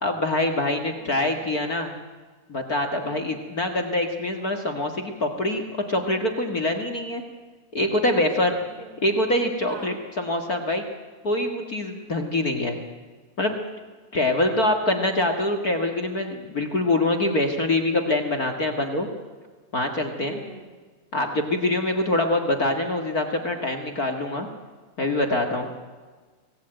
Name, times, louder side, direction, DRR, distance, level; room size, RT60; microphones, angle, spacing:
voice 1, 0.0-1.9 2.5-5.6 5.9-7.2 7.7-8.5 9.0-10.8 11.2-12.8 13.4-13.5 14.1-19.1 19.7-20.4 21.1-24.5 25.0-25.7, left 1 dB, 35° left, 4 dB, 1.7 m, -24 dB
voice 2, 3.0-3.3 8.7-9.0 9.6-10.0 20.2-20.7 22.1-22.4, right 2 dB, 15° right, 5 dB, 2.3 m, -42 dB
24.5 x 19.0 x 9.1 m, 1.4 s
omnidirectional pair, 3.7 m